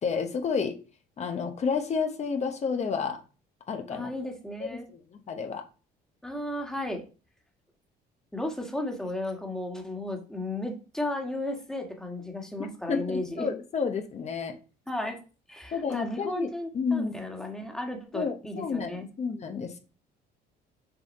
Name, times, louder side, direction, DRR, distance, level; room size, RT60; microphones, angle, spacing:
voice 1, 0.0-0.8 1.2-3.2 3.7-4.1 4.6-5.0 5.3-5.6 12.6-14.6 15.7-17.3 18.1-19.8, left 5 dB, 40° left, 6 dB, 1.0 m, -30 dB
voice 2, 3.9-4.9 6.2-7.0 8.3-13.5 14.9-15.2 15.5-19.1, left 1 dB, 5° left, 2 dB, 1.6 m, -34 dB
6.8 x 4.2 x 4.1 m, 0.34 s
cardioid pair, 110°, 17 cm